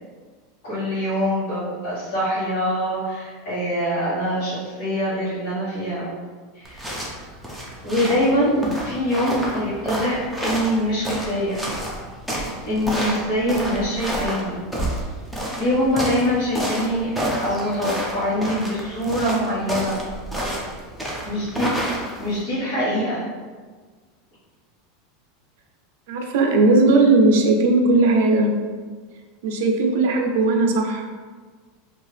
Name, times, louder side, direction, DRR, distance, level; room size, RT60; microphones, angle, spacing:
voice 1, 0.6-6.1 6.5-7.0 7.8-11.6 12.6-14.6 15.6-17.1 17.4-20.0 20.4-20.6 21.2-21.7 22.2-23.2, equal, 60° left, -12 dB, 1.2 m, -24 dB
sound 1, 6.6-22.4, equal, ahead, 0.5 m, -29 dB
voice 2, 26.1-28.5 29.4-31.0, right 2 dB, 70° right, 2 dB, 0.5 m, -17 dB
2.7 x 2.3 x 3.2 m, 1.5 s
supercardioid pair, 150°, 0 cm